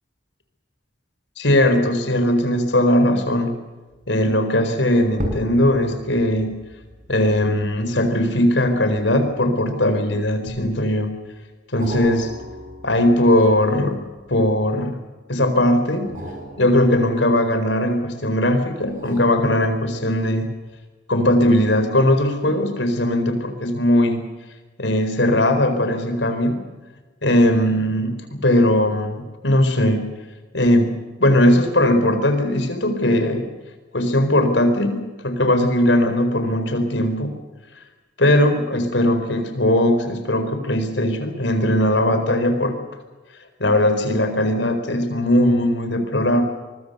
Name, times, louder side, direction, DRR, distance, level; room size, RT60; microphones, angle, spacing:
voice 1, 1.4-3.5 4.1-6.5 7.1-11.1 11.7-12.3 12.8-15.0 15.3-16.2 16.6-20.5 21.1-24.2 24.8-26.6 27.2-30.0 30.5-33.4 33.9-37.3 38.2-42.7 43.6-46.4, left 1 dB, 75° left, 8 dB, 4.5 m, -19 dB
sound 1, 3.9-4.2 5.1-9.8 10.5-11.1 11.8-14.8 16.0-18.0 18.8-20.2 20.7-20.8, equal, 45° right, 5.9 m, -37 dB
24.5 x 22.0 x 6.8 m, 1.2 s
head